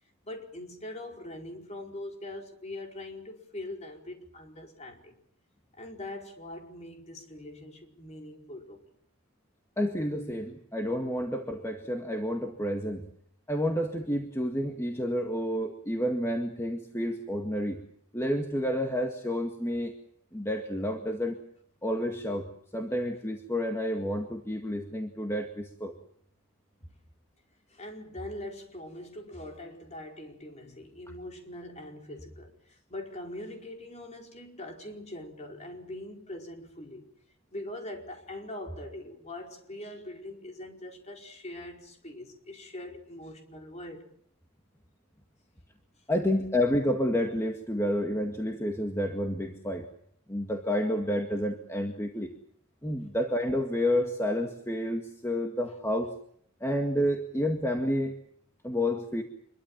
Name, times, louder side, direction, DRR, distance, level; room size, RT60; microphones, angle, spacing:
voice 1, 0.2-5.2 5.8-8.8 26.8-26.9 27.7-37.1 37.5-44.1, left 1 dB, 30° left, 2 dB, 4.8 m, -42 dB
voice 2, 9.8-13.1 13.5-17.8 18.1-19.9 20.3-21.4 21.8-25.9 46.1-49.9 50.3-52.3 52.8-56.1 56.6-58.2 58.6-59.2, equal, 10° left, 3 dB, 2.0 m, -30 dB
26.5 x 23.0 x 7.5 m, 0.65 s
head